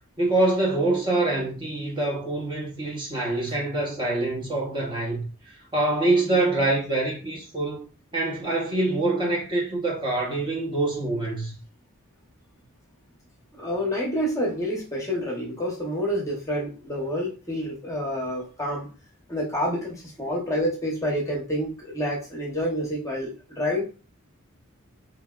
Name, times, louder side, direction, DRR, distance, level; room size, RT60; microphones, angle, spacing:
voice 1, 0.2-7.9 8.1-11.5, right 2 dB, 20° right, 0.6 m, -25 dB
voice 2, 13.5-18.9 19.3-23.8, equal, 15° left, 0.7 m, -28 dB
2.8 x 2.8 x 2.3 m
head